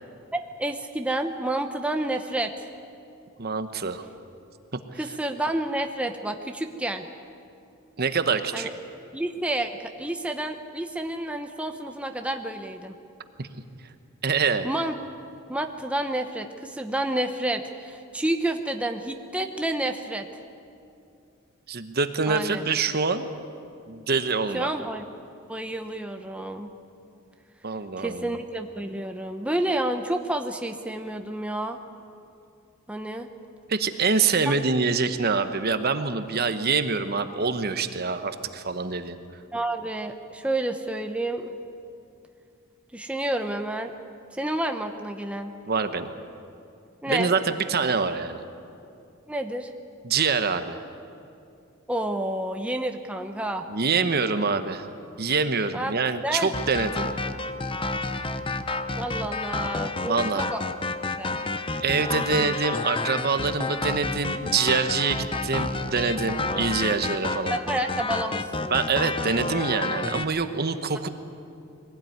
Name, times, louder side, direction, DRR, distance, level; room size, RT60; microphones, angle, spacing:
voice 1, 0.3-2.7 5.0-7.1 8.5-8.7 9.1-12.9 14.6-14.9 15.5-20.3 22.3-22.6 24.5-25.0 25.5-26.7 28.0-31.8 32.9-33.3 34.5-34.6 39.5-41.5 42.9-44.0 44.3-45.5 47.0-47.3 49.3-49.7 51.9-53.6 55.7-55.9 56.2-56.5 59.0-60.6 61.2-61.4 62.3-62.5 66.4-66.6 67.5-68.7, right 1 dB, 5° right, 5 dB, 0.8 m, -29 dB
voice 2, 3.4-4.1 4.9-5.0 8.0-8.7 13.4-13.5 14.2-14.7 21.7-23.3 23.9-24.7 27.6-28.2 33.7-39.2 45.7-46.1 47.1-48.4 50.0-50.8 53.7-54.9 55.2-57.1 60.0-60.5 61.8-67.6 68.7-71.1, right 4 dB, 50° right, 9 dB, 1.0 m, -25 dB
sound 1, 56.5-70.2, left 3 dB, 25° left, 0.8 m, -30 dB
22.5 x 17.0 x 9.4 m, 2.6 s
head